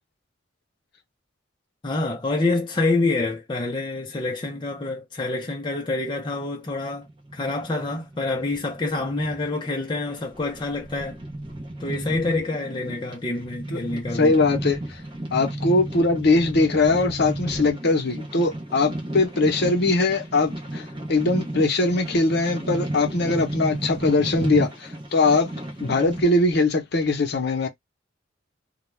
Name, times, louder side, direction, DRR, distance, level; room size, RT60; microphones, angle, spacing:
voice 1, 1.8-7.1 7.3-11.2 11.8-14.4, left 2 dB, 25° left, 0.5 m, -27 dB
sound 1, 6.9-26.2, right 1 dB, 25° right, 0.7 m, -33 dB
voice 2, 14.1-15.0 15.3-25.5 25.8-27.7, left 3 dB, 55° left, 0.7 m, -21 dB
2.3 x 2.2 x 3.1 m
head